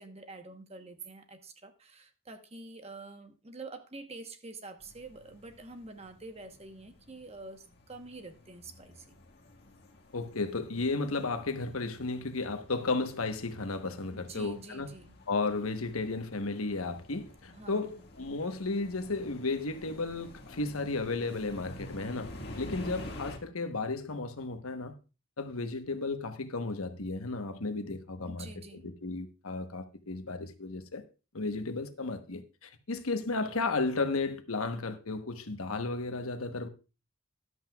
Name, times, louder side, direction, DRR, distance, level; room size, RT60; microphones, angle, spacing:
voice 1, 0.0-9.2 14.1-15.2 17.5-18.0 28.3-28.9, right 3 dB, 30° right, 1.0 m, -47 dB
sound 1, 4.8-23.4, left 1 dB, 50° left, 1.8 m, -49 dB
voice 2, 10.1-14.9 15.3-24.9 25.4-31.0 31.3-36.7, left 3 dB, 85° left, 1.1 m, -34 dB
13.5 x 11.0 x 2.4 m
head